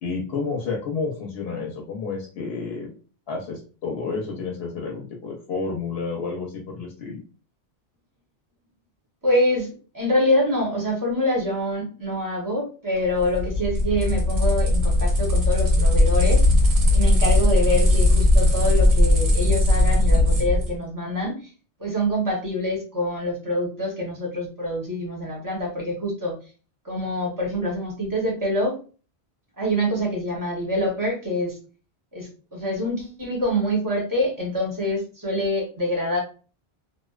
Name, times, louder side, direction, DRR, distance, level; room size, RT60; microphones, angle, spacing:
voice 1, 0.0-2.9 3.3-7.2, left 4 dB, 70° left, -1 dB, 0.8 m, -30 dB
voice 2, 9.2-9.7 9.9-16.4 16.9-21.5 21.8-26.4 26.8-28.8 29.6-31.6 32.1-36.2, left 1 dB, 20° right, -2 dB, 0.7 m, -25 dB
sound 1, 13.1-20.7, left 1 dB, 75° right, 1.1 m, -18 dB
2.5 x 2.1 x 2.3 m, 0.37 s
omnidirectional pair, 1.1 m